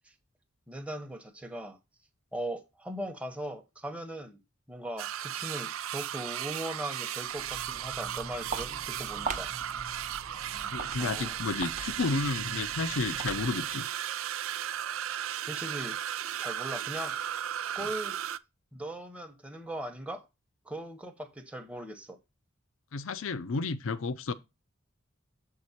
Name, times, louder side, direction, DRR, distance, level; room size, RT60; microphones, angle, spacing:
voice 1, 0.7-1.8 2.3-4.4 4.7-9.5 11.0-11.4 15.5-16.0 16.4-17.2 17.7-18.2 18.7-20.2 20.6-22.2, right 1 dB, 5° right, 0.9 m, -39 dB
sound 1, 5.0-18.4, right 10 dB, 85° right, 0.4 m, -35 dB
Walk footsteps, 7.2-13.8, right 4 dB, 35° right, 0.8 m, -42 dB
voice 2, 10.7-13.9 22.9-24.3, left 3 dB, 75° left, 0.6 m, -32 dB
7.5 x 4.8 x 4.2 m
head